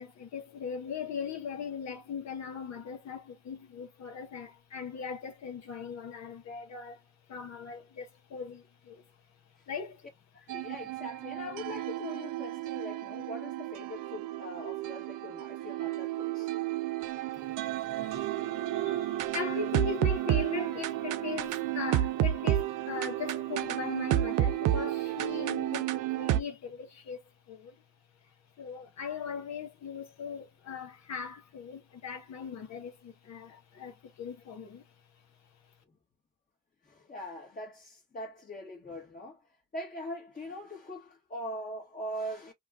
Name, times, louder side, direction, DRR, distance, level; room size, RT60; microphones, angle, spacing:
voice 1, 0.0-7.0 7.3-9.0 9.7-10.0 17.3-18.3 18.7-27.8 28.6-34.8, left 6 dB, 60° left, 1.0 m, -39 dB
voice 2, 10.3-16.5 36.8-39.4 39.7-42.5, left 1 dB, 30° left, 1.2 m, -42 dB
sound 1, 10.5-26.4, right 13 dB, 90° right, 0.6 m, -31 dB
2.8 x 2.3 x 3.5 m
cardioid pair, 90°, 30 cm